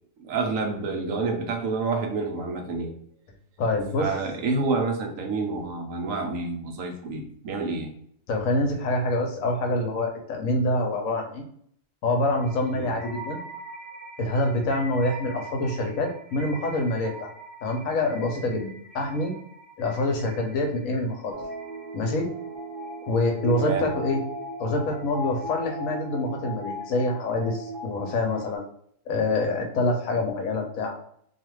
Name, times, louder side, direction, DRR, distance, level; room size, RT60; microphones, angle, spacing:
voice 1, 0.2-3.0 4.0-7.9 12.7-12.9 23.6-23.9, right 3 dB, 75° right, 3 dB, 1.0 m, -28 dB
voice 2, 3.6-4.1 8.3-11.4 12.0-13.4 14.2-17.3 17.6-18.7 18.9-19.3 19.8-21.3 21.9-22.3 23.1-24.2 24.6-28.6 29.1-30.9, left 2 dB, 75° left, 2 dB, 1.1 m, -26 dB
sound 1, 12.3-28.6, right 1 dB, 45° right, 1.2 m, -38 dB
2.7 x 2.4 x 3.0 m, 0.65 s
omnidirectional pair, 1.5 m